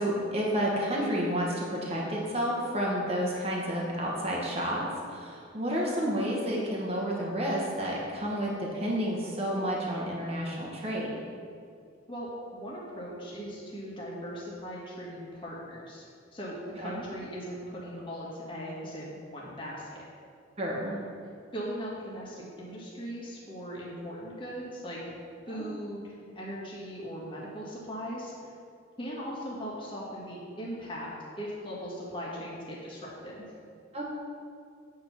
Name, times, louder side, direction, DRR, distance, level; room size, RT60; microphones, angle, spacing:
voice 1, 0.0-11.1 16.8-17.0 20.6-21.0 25.5-25.6 33.9-34.1, equal, 30° right, -3 dB, 1.3 m, -30 dB
voice 2, 12.1-16.1 16.3-20.0 21.5-25.2 25.5-28.5 29.0-31.1 31.4-33.5, equal, 25° left, -6 dB, 1.7 m, -39 dB
8.4 x 4.7 x 5.8 m, 2.3 s
head